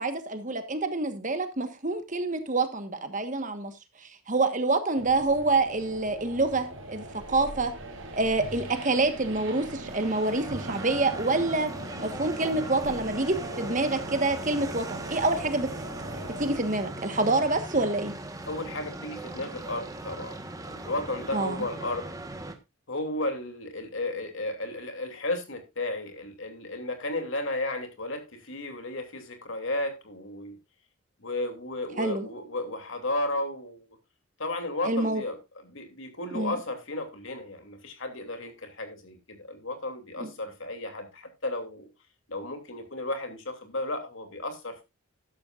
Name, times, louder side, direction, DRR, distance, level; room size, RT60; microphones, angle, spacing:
voice 1, 0.0-3.7 4.0-7.7 8.1-11.7 12.0-15.7 16.4-18.1 21.3-21.6 32.0-32.3 34.8-35.2 36.3-36.6 40.2-40.3, right 2 dB, 35° right, 1.4 m, -27 dB
sound 1, 5.0-16.6, right 1 dB, 60° right, 3.5 m, -40 dB
sound 2, 9.8-22.5, right 2 dB, 15° right, 1.2 m, -39 dB
voice 2, 18.5-20.4 20.7-22.1 22.9-30.6 31.2-33.9 34.4-41.9 42.3-44.8, left 2 dB, 60° left, 2.8 m, -34 dB
14.0 x 11.5 x 2.5 m
head